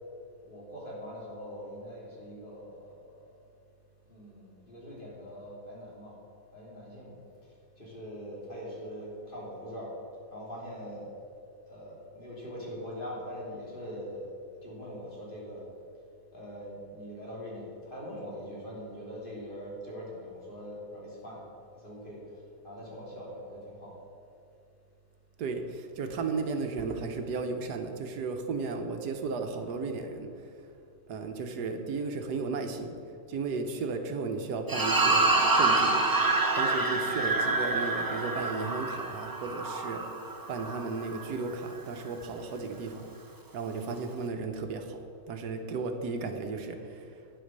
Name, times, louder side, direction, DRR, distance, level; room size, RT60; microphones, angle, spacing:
voice 1, 0.5-2.8 4.1-6.2 6.5-7.1 7.8-9.9 10.3-11.1 11.7-14.2 14.6-15.6 16.3-21.5 21.8-22.2 22.6-24.0 26.0-26.2, equal, 30° left, -6 dB, 3.4 m, -42 dB
voice 2, 25.4-30.4 31.1-33.0 33.3-36.0 36.6-40.0 40.5-43.1 43.5-47.2, right 4 dB, 80° right, 6 dB, 1.5 m, -34 dB
sound 1, 34.7-41.2, right 3 dB, 20° right, 0.5 m, -27 dB
9.6 x 8.1 x 6.6 m, 2.5 s
omnidirectional pair, 1.7 m